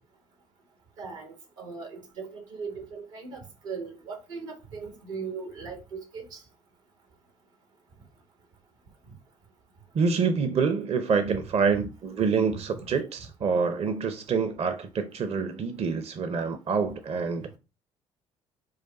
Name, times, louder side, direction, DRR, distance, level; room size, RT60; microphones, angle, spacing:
voice 1, 1.0-6.4 11.3-11.4 11.7-11.9 12.5-12.8, right 5 dB, 80° right, 1.3 m, -39 dB
voice 2, 9.9-17.6, right 5 dB, 40° right, 0.6 m, -26 dB
4.9 x 2.3 x 4.1 m
figure-of-eight pair, 50°, 16 cm